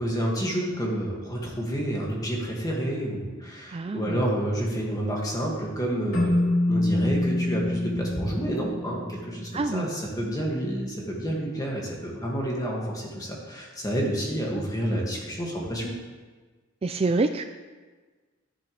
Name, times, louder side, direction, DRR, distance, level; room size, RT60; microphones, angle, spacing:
voice 1, 0.0-15.9, right 1 dB, 20° left, -3 dB, 2.1 m, -29 dB
voice 2, 3.7-4.2 9.5-9.9 16.8-17.4, right 3 dB, 30° right, 8 dB, 0.3 m, -26 dB
Keyboard (musical), 6.1-9.4, left 1 dB, 80° left, 3.3 m, -26 dB
11.5 x 11.0 x 3.3 m, 1.4 s
head